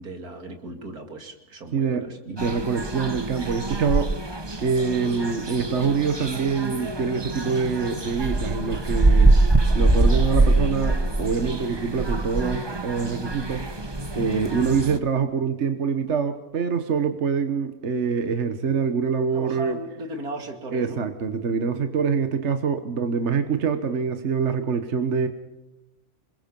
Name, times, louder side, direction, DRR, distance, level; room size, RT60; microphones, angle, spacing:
voice 1, 0.0-2.2 19.3-21.0, right 1 dB, 70° right, 5 dB, 3.0 m, -36 dB
voice 2, 1.7-4.3 4.6-9.3 9.7-13.7 14.1-19.8 20.7-25.3, right 5 dB, 50° right, 9 dB, 1.4 m, -25 dB
sound 1, 2.4-15.0, right 2 dB, 20° right, 1.0 m, -24 dB
27.0 x 21.5 x 5.4 m, 0.95 s
omnidirectional pair, 1.6 m